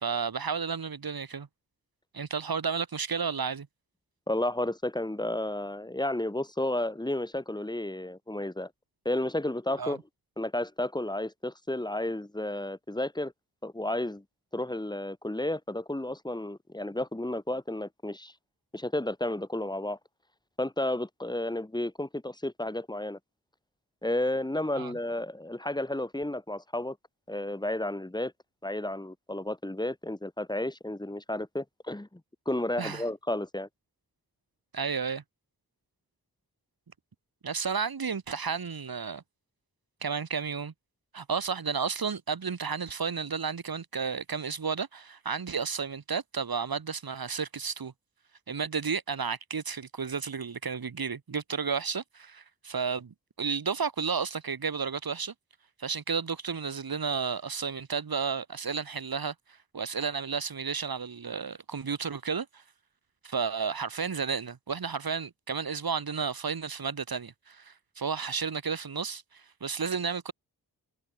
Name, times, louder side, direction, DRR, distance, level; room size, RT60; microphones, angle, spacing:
voice 1, 0.0-1.5 2.1-3.7 9.8-10.0 24.8-24.9 32.8-33.0 34.7-35.2 37.4-39.2 40.0-40.7 41.1-47.9 48.5-55.3 55.8-59.3 59.7-62.6 63.2-70.3, right 6 dB, 65° right, 4.4 m, -32 dB
voice 2, 4.3-8.7 9.1-10.0 10.4-13.3 13.6-14.2 14.5-18.3 18.7-20.0 20.6-23.2 24.0-27.0 27.3-28.3 28.6-32.2 32.5-33.7, left 1 dB, 10° left, 3.4 m, -32 dB
wide cardioid pair, 110°, 38 cm